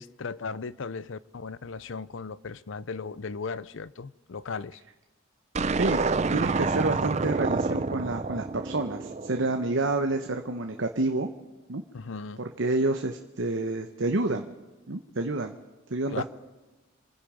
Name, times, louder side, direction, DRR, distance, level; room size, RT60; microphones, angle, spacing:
voice 1, 0.0-4.8 11.9-12.5 16.1-16.2, left 4 dB, 70° left, 0.6 m, -37 dB
sound 1, 5.5-9.9, right 4 dB, 35° right, 0.5 m, -28 dB
voice 2, 6.3-11.3 11.7-11.8 12.6-14.4 14.9-15.6 15.9-16.2, right 2 dB, 65° right, 1.0 m, -28 dB
27.5 x 10.5 x 5.1 m
head